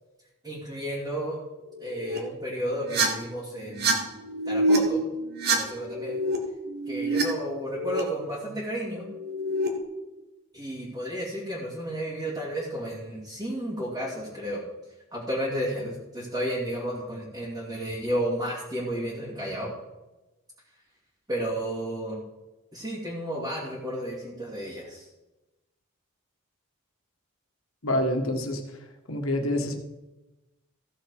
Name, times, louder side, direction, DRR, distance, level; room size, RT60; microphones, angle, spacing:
voice 1, 0.4-1.4 1.8-4.1 4.4-5.1 5.5-6.2 6.9-9.1 10.5-14.6 15.1-19.7 21.3-22.2 22.7-25.1, right 1 dB, 20° right, -7 dB, 2.5 m, -32 dB
sound 1, 1.7-2.2 2.8-3.1 3.6-3.9 4.2-4.8 5.2-6.4 6.7-7.2 7.5-8.0 9.0-9.7, right 1 dB, 50° right, 1.6 m, -27 dB
voice 2, 27.8-28.8 29.1-29.8, left 1 dB, 70° left, 4 dB, 1.7 m, -27 dB
15.0 x 7.1 x 4.8 m, 1.0 s
head